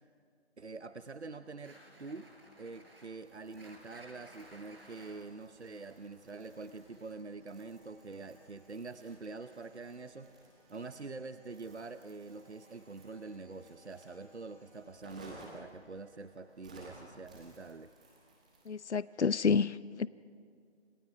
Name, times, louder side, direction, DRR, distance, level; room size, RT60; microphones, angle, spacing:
voice 1, 0.6-2.3 2.6-10.3 10.7-17.9, right 3 dB, 75° right, 0.9 m, -45 dB
sound 1, 1.3-17.1, left 1 dB, 25° right, 6.3 m, -67 dB
sound 2, 1.6-7.2, right 1 dB, 55° right, 6.1 m, -58 dB
Crumpling crinkling, 3.2-19.0, right 1 dB, 5° right, 1.1 m, -59 dB
voice 2, 18.7-20.1, left 5 dB, 75° left, 0.6 m, -29 dB
30.0 x 27.5 x 4.9 m
figure-of-eight pair, 160°, 34 cm